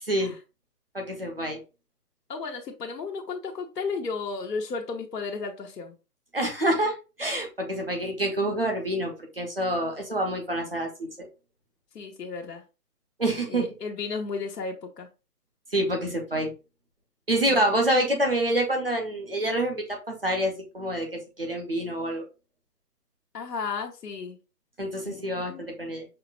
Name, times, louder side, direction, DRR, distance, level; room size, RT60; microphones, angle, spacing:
voice 1, 0.0-0.3 0.9-1.6 6.3-11.3 13.2-13.7 15.7-16.5 17.3-22.3 24.8-26.1, right 1 dB, 35° right, 3 dB, 0.6 m, -27 dB
voice 2, 2.3-5.9 7.3-7.4 11.9-12.6 13.5-15.1 17.4-17.7 23.3-24.4 25.0-25.2 25.5-25.7, left 4 dB, 75° left, 2 dB, 1.0 m, -34 dB
5.7 x 2.0 x 2.3 m, 0.30 s
hypercardioid pair, 175°, 48 cm